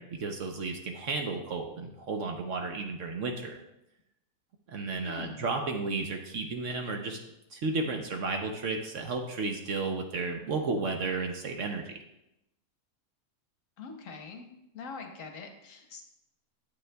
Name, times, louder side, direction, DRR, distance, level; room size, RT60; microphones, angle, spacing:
voice 1, 0.0-3.6 4.7-7.2 7.5-12.0, right 3 dB, 60° right, 3 dB, 0.9 m, -33 dB
voice 2, 5.0-5.5 13.8-14.5 14.7-16.0, left 4 dB, 60° left, 4 dB, 1.1 m, -43 dB
9.1 x 7.6 x 2.2 m, 0.87 s
omnidirectional pair, 1.6 m